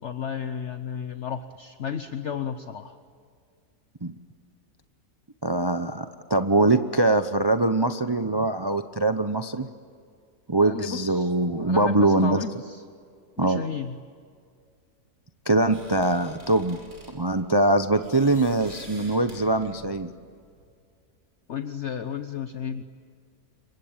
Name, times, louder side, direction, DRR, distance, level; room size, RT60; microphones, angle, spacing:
voice 1, 0.0-2.9 10.6-11.3 11.6-12.8 13.4-14.0 21.5-22.8, left 7 dB, 50° left, 9 dB, 1.1 m, -33 dB
voice 2, 5.4-9.7 10.5-12.4 13.4-13.6 15.5-16.8 17.1-20.1, right 2 dB, 25° right, 9 dB, 0.5 m, -23 dB
sound 1, 15.7-20.7, equal, 55° right, 6.0 m, -48 dB
27.5 x 24.0 x 8.9 m, 2.1 s
omnidirectional pair, 1.7 m